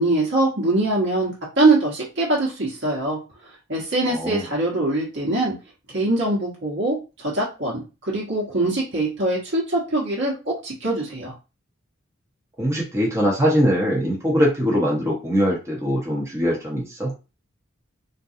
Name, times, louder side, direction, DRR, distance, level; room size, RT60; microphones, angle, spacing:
voice 1, 0.0-3.2 3.7-5.5 5.9-11.3, right 2 dB, 60° right, -4 dB, 1.3 m, -23 dB
voice 2, 4.1-4.4 12.6-17.1, equal, 15° right, -3 dB, 1.0 m, -22 dB
3.8 x 2.6 x 2.7 m, 0.30 s
head